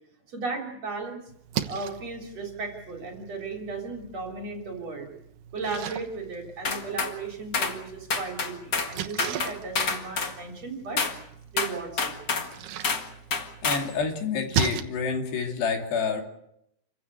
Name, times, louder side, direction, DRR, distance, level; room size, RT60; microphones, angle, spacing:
voice 1, 0.3-1.2 1.7-5.1 5.5-11.0 11.5-12.1, right 4 dB, 40° right, 2 dB, 4.2 m, -35 dB
Splash splatter, 1.3-14.8, right 9 dB, 65° right, 2.3 m, -37 dB
sound 1, 6.6-7.1 7.5-7.8 8.1-8.9 9.2-10.3 11.0-11.2 11.6-12.5 12.8-13.1 13.3-13.9, left 4 dB, 50° left, 1.2 m, -28 dB
voice 2, 13.6-16.2, left 5 dB, 75° left, 3 dB, 4.9 m, -28 dB
28.5 x 15.5 x 8.4 m, 0.78 s
omnidirectional pair, 4.9 m